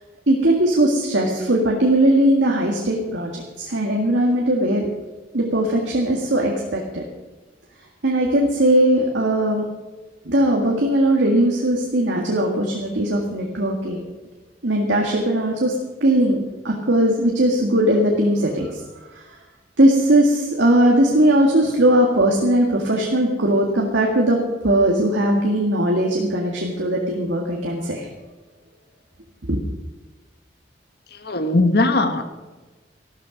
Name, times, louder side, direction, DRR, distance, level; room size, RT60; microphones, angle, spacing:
voice 1, 0.3-4.9 5.3-7.0 8.0-9.7 10.3-14.0 14.6-15.8 16.0-16.4 16.6-18.8 19.1-19.2 19.8-28.1 29.5-29.6, right 1 dB, 90° right, 0 dB, 1.9 m, -19 dB
voice 2, 31.1-32.2, left 2 dB, 60° left, 8 dB, 1.3 m, -19 dB
14.0 x 12.5 x 5.1 m, 1.2 s
head